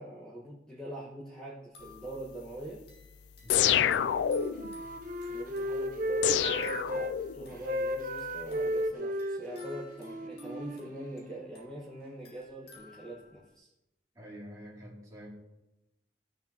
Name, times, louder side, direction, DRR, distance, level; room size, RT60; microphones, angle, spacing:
voice 1, 0.0-2.8 5.3-13.7, right 1 dB, 5° left, -7 dB, 1.4 m, -43 dB
sound 1, 1.6-13.5, left 3 dB, 60° left, 2.5 m, -58 dB
voice 2, 3.4-3.8 14.1-15.3, equal, 20° right, -6 dB, 2.7 m, -47 dB
sound 2, 3.5-4.7 6.2-7.5, left 9 dB, 75° left, 0.3 m, -27 dB
Wind instrument woodwind instrument, 4.2-7.1 7.6-11.5, equal, 45° right, 0.8 m, -34 dB
15.0 x 6.8 x 2.9 m, 0.93 s
head